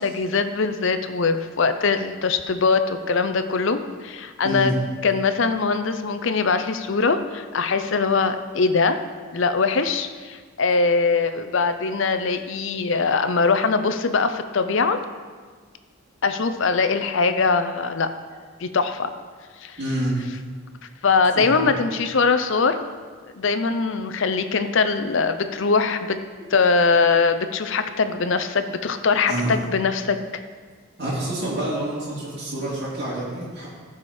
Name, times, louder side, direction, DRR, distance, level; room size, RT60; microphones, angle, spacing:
voice 1, 0.0-4.7 5.0-9.0 9.3-15.0 16.2-18.1 18.6-19.1 19.6-19.8 21.0-22.8 23.3-26.2 26.5-30.4, left 4 dB, 60° left, 9 dB, 0.5 m, -22 dB
voice 2, 19.8-20.2 21.3-21.7 26.4-26.5 29.3-29.5 31.0-33.7, right 1 dB, 50° right, -9 dB, 2.6 m, -27 dB
14.5 x 4.9 x 4.3 m, 1.5 s
head